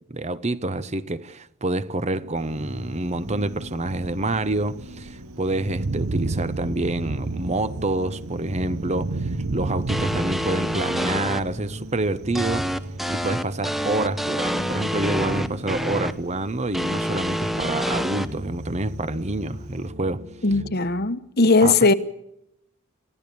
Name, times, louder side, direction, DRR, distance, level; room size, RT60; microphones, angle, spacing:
voice 1, 0.1-12.7 13.1-20.2 21.6-21.9, right 2 dB, 30° right, 0.9 m, -27 dB
sound 1, 2.1-20.7, equal, 60° right, 3.8 m, -39 dB
Thunder, 2.4-19.9, right 3 dB, 85° right, 0.9 m, -35 dB
sound 2, 9.9-11.4 12.4-16.1 16.7-18.3, equal, ahead, 0.9 m, -27 dB
voice 2, 20.4-21.9, left 3 dB, 50° left, 1.2 m, -18 dB
29.5 x 15.5 x 6.9 m
head